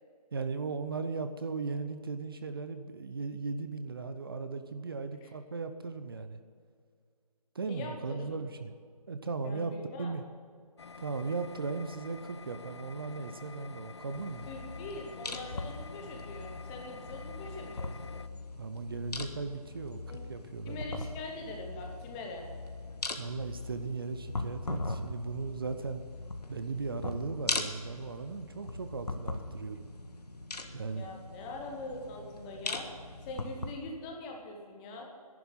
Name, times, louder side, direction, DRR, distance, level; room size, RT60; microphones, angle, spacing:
voice 1, 0.3-6.4 7.5-8.8 9.1-10.2 11.0-14.5 18.6-21.0 23.2-26.0 26.5-29.9 30.7-31.1, right 4 dB, 35° right, 9 dB, 0.7 m, -37 dB
voice 2, 7.7-8.4 9.4-10.1 14.5-18.2 20.1-20.2 20.7-22.5 31.0-32.9 33.2-35.1, left 2 dB, 10° left, 1 dB, 0.9 m, -43 dB
sound 1, 10.8-18.3, left 4 dB, 45° left, 0.4 m, -48 dB
sound 2, 14.1-33.7, left 2 dB, 80° left, 1.7 m, -40 dB
11.0 x 11.0 x 7.4 m, 2.1 s
figure-of-eight pair, 160°, 20 cm